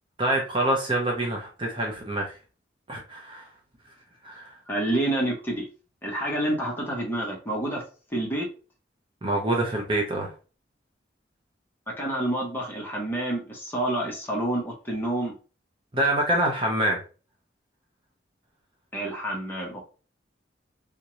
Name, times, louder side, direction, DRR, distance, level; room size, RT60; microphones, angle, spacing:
voice 1, 0.2-2.4 2.9-3.5 4.2-4.5 9.2-10.3 15.9-17.0, right 1 dB, 25° right, 0 dB, 0.7 m, -26 dB
voice 2, 4.7-5.7 6.0-7.8 8.1-8.5 11.9-15.3 18.9-19.8, right 1 dB, 10° left, -3 dB, 1.0 m, -28 dB
3.5 x 2.8 x 3.0 m, 0.36 s
head